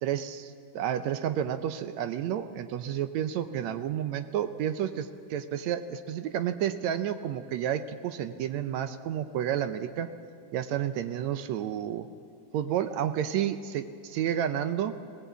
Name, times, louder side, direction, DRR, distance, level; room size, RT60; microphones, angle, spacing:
voice 1, 0.0-10.1 10.5-12.1 12.5-15.0, right 10 dB, 75° right, 10 dB, 1.8 m, -31 dB
20.0 x 19.0 x 8.3 m, 2.4 s
omnidirectional pair, 3.7 m